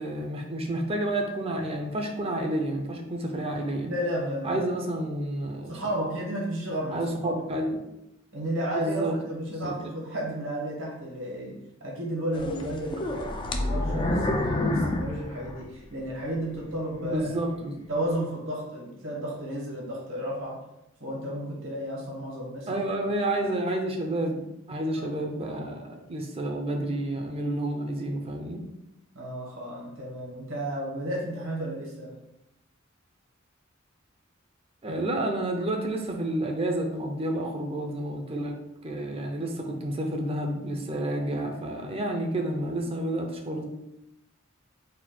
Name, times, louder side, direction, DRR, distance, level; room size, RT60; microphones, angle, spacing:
voice 1, 0.0-3.9 4.4-6.1 6.9-7.8 8.8-9.2 9.5-9.8 17.0-17.8 22.7-28.6 34.8-38.6 38.8-43.6, right 1 dB, 30° right, 3 dB, 0.5 m, -30 dB
voice 2, 3.8-4.6 5.7-7.4 8.3-13.3 13.6-17.3 17.9-20.6 21.0-22.7 25.0-25.1 29.1-32.2, right 1 dB, 80° right, -3 dB, 1.3 m, -33 dB
sound 1, 12.3-16.1 16.6-16.7 17.3-17.4, left 1 dB, 25° left, 0.3 m, -28 dB
4.2 x 2.4 x 4.2 m, 0.85 s
head